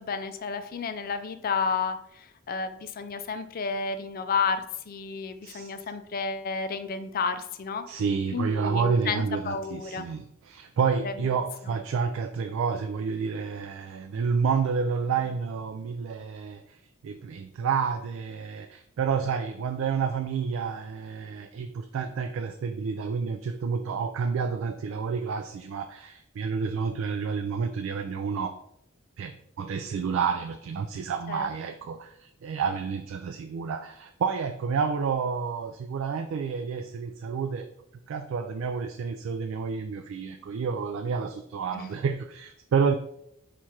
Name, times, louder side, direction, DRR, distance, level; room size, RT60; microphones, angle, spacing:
voice 1, 0.0-7.8 8.3-10.1 11.0-11.4 11.7-11.8 31.3-31.5 41.7-41.9, left 5 dB, 45° left, 10 dB, 0.3 m, -31 dB
voice 2, 7.9-16.8 17.0-28.5 29.2-37.7 38.1-42.9, right 5 dB, 75° right, 7 dB, 0.3 m, -29 dB
4.3 x 2.4 x 4.5 m, 0.75 s
head